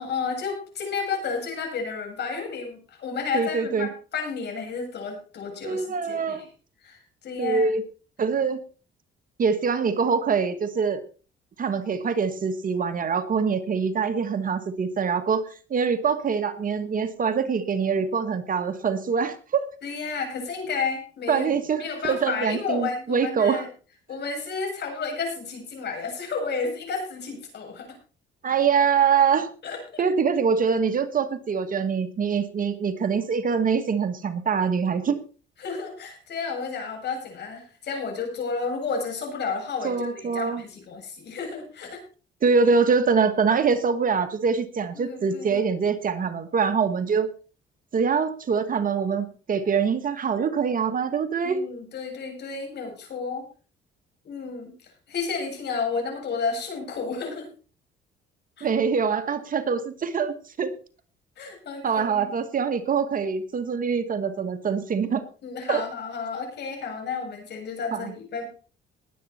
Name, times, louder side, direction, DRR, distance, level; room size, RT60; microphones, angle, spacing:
voice 1, 0.0-6.4 6.8-7.7 19.8-23.7 24.1-27.9 29.6-30.0 35.6-42.0 45.0-45.6 51.4-53.4 54.2-54.7 55.1-57.5 58.6-58.7 61.4-62.3 65.4-68.5, left 5 dB, 55° left, 2 dB, 7.7 m, -32 dB
voice 2, 3.3-3.9 5.6-6.4 7.4-7.8 8.2-8.6 9.4-11.0 11.6-19.6 21.3-23.6 28.4-29.5 30.0-35.2 39.8-40.6 42.4-47.3 47.9-51.6 58.6-60.7 61.8-65.2 65.7-65.8 67.9-68.1, right 6 dB, 40° right, 9 dB, 1.7 m, -24 dB
20.5 x 8.6 x 4.4 m, 0.38 s
cardioid pair, 110°, 21 cm